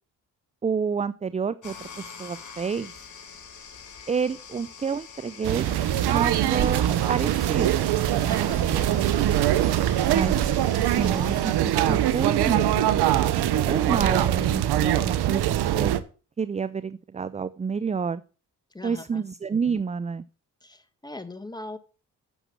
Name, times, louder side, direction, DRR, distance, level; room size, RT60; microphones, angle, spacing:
voice 1, 0.6-2.9 4.1-5.7 6.1-7.9 8.2-9.1 10.1-10.4 10.8-12.9 13.7-15.4 15.7-15.9 16.4-18.2 18.8-20.2, right 6 dB, 20° right, 17 dB, 0.4 m, -29 dB
sound 1, 1.6-11.6, left 6 dB, 50° left, 2.6 m, -45 dB
sound 2, 5.4-16.0, right 12 dB, 75° right, 0.9 m, -23 dB
voice 2, 8.2-8.6 18.7-19.2 20.6-21.8, left 2 dB, 10° left, 9 dB, 1.6 m, -40 dB
7.8 x 6.6 x 6.1 m, 0.37 s
supercardioid pair, 55°, 40 cm